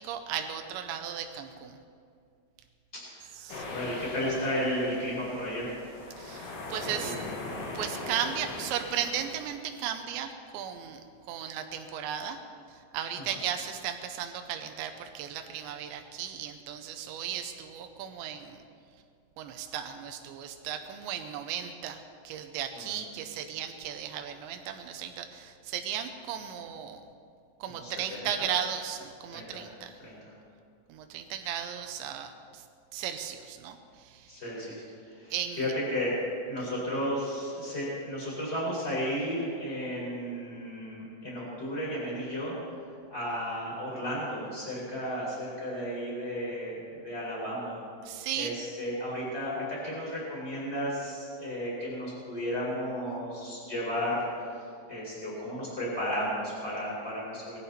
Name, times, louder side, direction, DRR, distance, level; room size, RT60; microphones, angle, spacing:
voice 1, 0.0-1.8 3.4-3.7 6.2-7.2 7.7-11.0 11.3-12.4 12.7-18.6 19.4-27.0 27.6-30.0 30.9-32.6 32.9-34.3 35.3-35.7 48.0-48.5, right 9 dB, 90° right, 6 dB, 3.1 m, -36 dB
voice 2, 2.9-3.3 3.7-5.8 6.9-7.1 13.2-13.4 22.7-22.9 27.7-28.3 29.3-29.6 30.0-30.3 34.3-36.2 36.4-42.5 43.1-47.8 48.3-54.4 54.9-57.6, equal, 15° left, -5 dB, 5.1 m, -33 dB
sound 1, 3.5-9.4, left 2 dB, 65° left, 4.0 m, -40 dB
19.5 x 15.0 x 4.3 m, 2.3 s
omnidirectional pair, 5.0 m